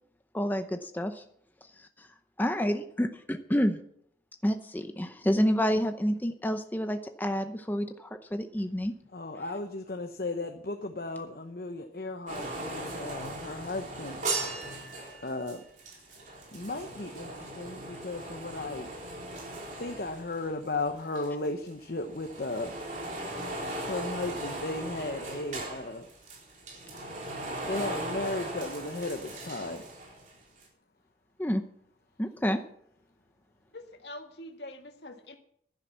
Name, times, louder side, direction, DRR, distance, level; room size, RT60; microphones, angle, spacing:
voice 1, 0.3-1.2 1.8-2.1 2.4-3.8 4.4-8.9 31.4-31.6 32.2-32.6, equal, 10° left, 7 dB, 0.7 m, -29 dB
voice 2, 9.1-14.2 14.6-15.6 16.5-18.9 19.8-22.7 23.2-23.6 23.8-26.1 27.6-29.8, left 2 dB, 55° left, 5 dB, 1.0 m, -35 dB
sound 1, 12.3-20.9 21.2-30.3 30.6-30.7, right 2 dB, 45° right, 4.0 m, -38 dB
voice 3, 33.7-35.4, left 1 dB, 75° left, 5 dB, 1.9 m, -44 dB
12.0 x 10.5 x 7.1 m, 0.69 s
head